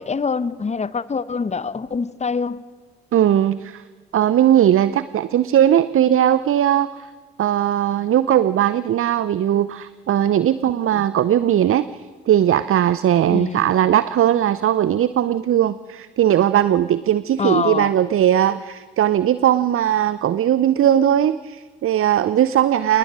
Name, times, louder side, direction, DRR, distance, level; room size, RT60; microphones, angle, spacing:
voice 1, 0.0-2.7 10.9-11.0 13.3-13.7 17.4-17.9, left 5 dB, 25° left, 0.9 m, -25 dB
voice 2, 3.1-3.8 4.1-7.1 7.4-23.0, right 11 dB, 45° right, 0.7 m, -18 dB
27.5 x 20.0 x 6.2 m
hypercardioid pair, 45°, 30 cm